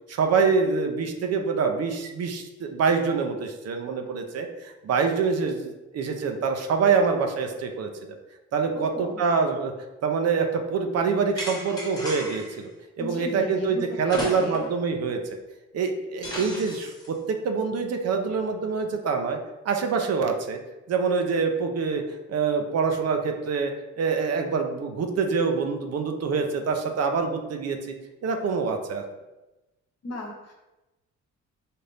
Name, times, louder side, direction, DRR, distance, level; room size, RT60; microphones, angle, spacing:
voice 1, 0.1-8.2 8.5-9.7 10.0-12.7 13.0-15.4 15.7-19.4 19.6-20.6 20.9-22.0 22.3-23.7 24.0-27.9 28.2-29.0, right 5 dB, 55° right, 5 dB, 0.6 m, -25 dB
voice 2, 8.7-9.2 13.0-14.7 30.0-30.5, left 1 dB, 55° left, 1 dB, 1.0 m, -35 dB
sound 1, 11.4-12.6 14.1-14.8 15.2-15.3 16.2-17.1, left 1 dB, 10° left, 1.1 m, -35 dB
4.2 x 2.5 x 3.3 m, 1.0 s
cardioid pair, 90°, 30 cm